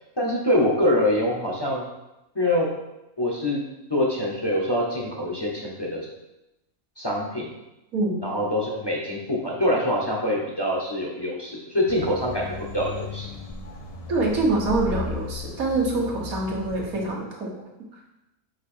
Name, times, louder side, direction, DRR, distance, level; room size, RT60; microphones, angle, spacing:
voice 1, 0.2-1.8 2.3-2.7 3.2-3.6 3.9-6.1 7.0-7.5 8.2-12.5 12.7-13.3, left 1 dB, 25° left, -3 dB, 0.7 m, -24 dB
sound 1, 11.9-17.1, left 4 dB, 50° left, 0.4 m, -36 dB
voice 2, 14.1-17.5, right 2 dB, 80° right, -1 dB, 1.6 m, -25 dB
5.2 x 4.6 x 4.3 m, 0.94 s
omnidirectional pair, 1.5 m